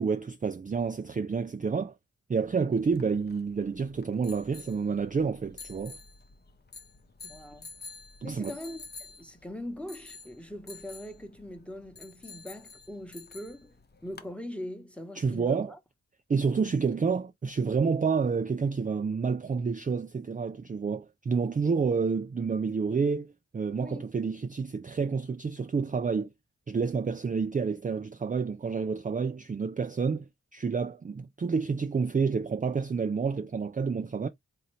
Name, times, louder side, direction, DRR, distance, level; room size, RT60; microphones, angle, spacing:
voice 1, 0.0-2.0 2.3-6.0 8.2-8.5 15.2-15.7 16.3-26.3 26.7-34.3, right 5 dB, 25° right, 0.4 m, -29 dB
sound 1, 2.7-14.3, left 4 dB, 35° left, 0.7 m, -50 dB
voice 2, 7.2-7.7 8.2-8.8 9.2-15.8 23.8-24.1, left 1 dB, 5° left, 1.0 m, -41 dB
3.8 x 2.8 x 3.1 m
wide cardioid pair, 60°, 30 cm